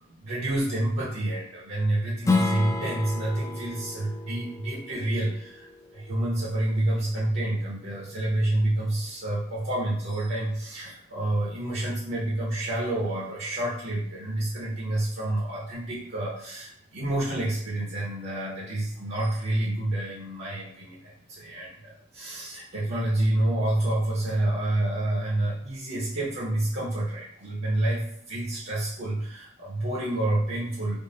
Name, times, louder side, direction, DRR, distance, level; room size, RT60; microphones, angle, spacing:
voice 1, 0.0-5.7 5.9-31.0, right 1 dB, 60° right, -6 dB, 0.8 m, -28 dB
Strum, 2.2-7.4, left 3 dB, 15° left, 0.4 m, -31 dB
3.6 x 2.1 x 3.9 m, 0.71 s
head